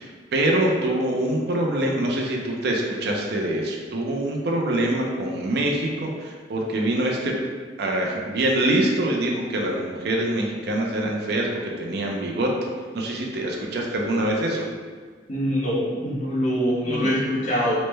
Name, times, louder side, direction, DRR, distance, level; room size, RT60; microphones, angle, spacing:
voice 1, 0.0-7.4 7.8-12.5 12.9-14.6 16.9-17.1, right 1 dB, 60° right, -1 dB, 0.4 m, -24 dB
voice 2, 15.3-17.8, equal, 40° left, -5 dB, 0.7 m, -24 dB
3.2 x 2.0 x 3.2 m, 1.6 s
head